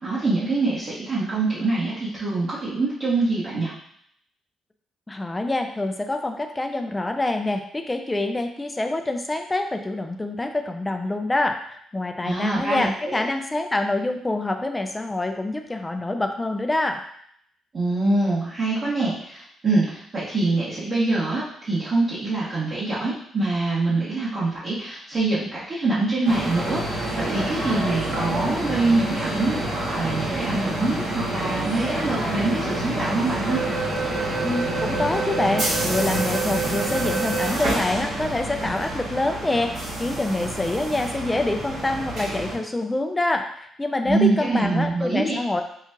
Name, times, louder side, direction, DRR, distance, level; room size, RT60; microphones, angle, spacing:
voice 1, 0.0-3.7 12.2-13.3 17.7-29.6 29.8-33.6 44.0-45.4, right 2 dB, 40° right, -10 dB, 1.6 m, -24 dB
voice 2, 5.1-11.6 11.9-17.0 34.4-39.7 40.0-45.6, left 2 dB, 15° left, 5 dB, 0.4 m, -26 dB
sound 1, 26.2-42.5, right 2 dB, 60° right, 1.7 m, -27 dB
5.7 x 2.4 x 2.9 m, 0.67 s
cardioid pair, 90°, 0 cm